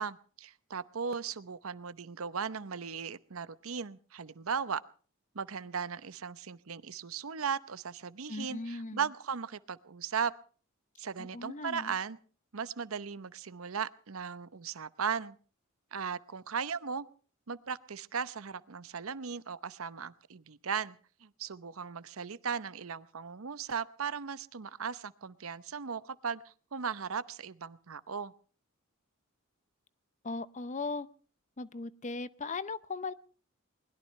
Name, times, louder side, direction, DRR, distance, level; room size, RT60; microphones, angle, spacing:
voice 1, 0.0-4.8 5.3-10.3 11.0-12.2 12.5-15.4 15.9-17.1 17.5-28.3, right 6 dB, 75° right, 16 dB, 0.8 m, -37 dB
voice 2, 8.3-9.0 11.2-11.9 30.2-31.1 31.6-33.1, left 3 dB, 35° left, 16 dB, 0.7 m, -38 dB
21.5 x 20.5 x 3.2 m, 0.41 s
head